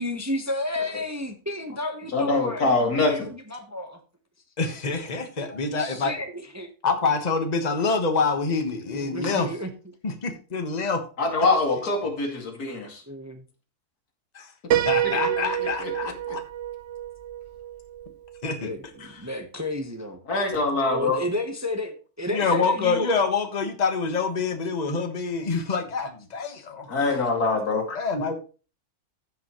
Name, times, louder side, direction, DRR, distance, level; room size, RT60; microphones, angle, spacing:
voice 1, 0.0-4.0 5.4-6.7 8.8-9.7 13.1-13.4 18.6-20.2 20.9-23.1 26.5-26.7, left 1 dB, 15° right, 5 dB, 1.0 m, -32 dB
voice 2, 2.1-3.3 9.2-9.3 11.2-13.0 14.6-16.1 20.3-21.2 26.9-28.0, left 3 dB, 85° left, 1 dB, 2.8 m, -25 dB
voice 3, 4.6-6.1 6.8-9.5 10.0-11.0 14.3-14.5 14.8-16.4 18.4-18.7 19.0-19.2 22.3-27.1 27.9-28.4, left 4 dB, 30° left, 6 dB, 1.3 m, -26 dB
Piano, 14.7-18.5, right 11 dB, 65° right, 0.7 m, -28 dB
14.5 x 5.6 x 3.1 m, 0.34 s
omnidirectional pair, 1.6 m